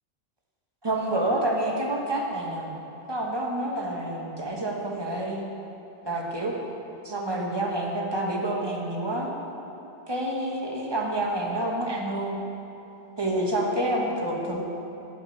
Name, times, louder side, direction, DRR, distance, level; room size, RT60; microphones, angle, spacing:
voice 1, 0.8-2.8 3.1-5.5 6.0-6.6 7.0-9.3 10.1-12.4 13.2-14.6, right 1 dB, 25° right, -1 dB, 1.2 m, -28 dB
10.0 x 5.7 x 7.0 m, 2.9 s
omnidirectional pair, 1.2 m